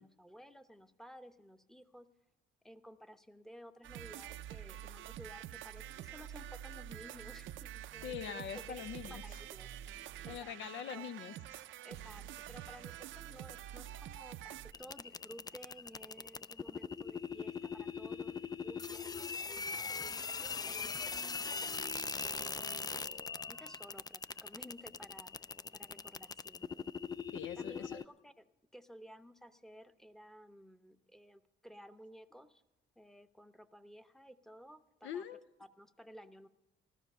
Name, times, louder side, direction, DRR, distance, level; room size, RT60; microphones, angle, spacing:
voice 1, 0.0-2.1 2.6-10.5 10.9-11.0 11.8-18.4 18.6-20.8 21.4-25.3 25.7-26.9 27.6-28.4 28.7-32.6 33.0-36.5, equal, ahead, 10 dB, 0.8 m, -55 dB
sound 1, 3.8-14.7, right 12 dB, 75° right, 0.5 m, -47 dB
voice 2, 8.0-9.4 10.3-11.6 27.3-28.0 35.0-35.4, left 8 dB, 75° left, 12 dB, 0.6 m, -43 dB
sound 2, 14.7-28.0, left 5 dB, 20° left, 0.4 m, -41 dB
14.5 x 13.5 x 5.5 m, 1.0 s
cardioid pair, 90°, 20 cm